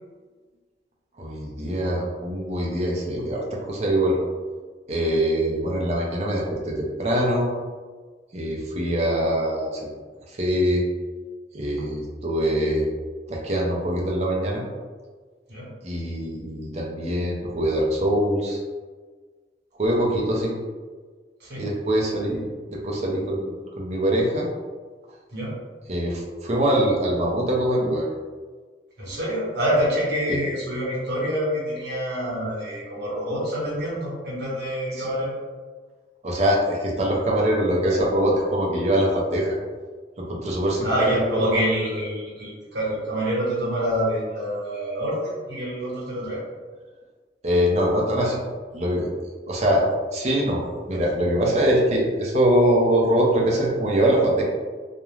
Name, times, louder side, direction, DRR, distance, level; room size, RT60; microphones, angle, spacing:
voice 1, 1.2-4.2 4.9-7.5 8.3-9.9 10.3-10.8 11.5-12.9 13.3-14.6 15.8-18.6 19.8-20.6 21.6-23.5 23.7-24.5 25.9-28.1 30.3-30.4 35.0-35.1 36.2-39.5 40.2-41.6 47.4-48.4 48.7-49.1 49.4-49.9 50.1-50.6 50.9-54.4, equal, 40° right, -3 dB, 0.5 m, -23 dB
voice 2, 29.0-35.3 40.8-46.4, equal, 65° right, -6 dB, 1.0 m, -26 dB
2.4 x 2.1 x 3.1 m, 1.5 s
head